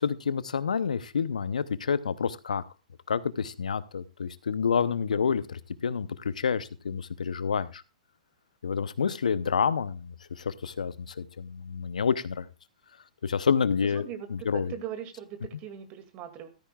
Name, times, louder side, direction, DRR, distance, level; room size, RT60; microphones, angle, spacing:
voice 1, 0.0-2.6 3.1-7.8 8.6-12.5 13.2-14.7, left 6 dB, 75° left, 16 dB, 0.7 m, -28 dB
voice 2, 13.8-16.5, right 9 dB, 35° right, 8 dB, 2.2 m, -40 dB
14.0 x 13.5 x 2.3 m, 0.28 s
hypercardioid pair, 115°, 4 cm